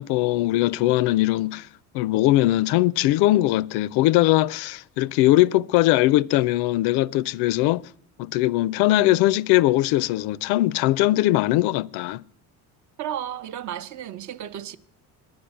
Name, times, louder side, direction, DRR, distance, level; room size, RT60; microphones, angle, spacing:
voice 1, 0.0-1.7 1.9-7.9 8.2-12.2, left 16 dB, 80° left, 0.5 m, -20 dB
voice 2, 13.0-14.8, right 10 dB, 50° right, 0.8 m, -33 dB
10.5 x 9.7 x 9.8 m
cardioid pair, 150°, 39 cm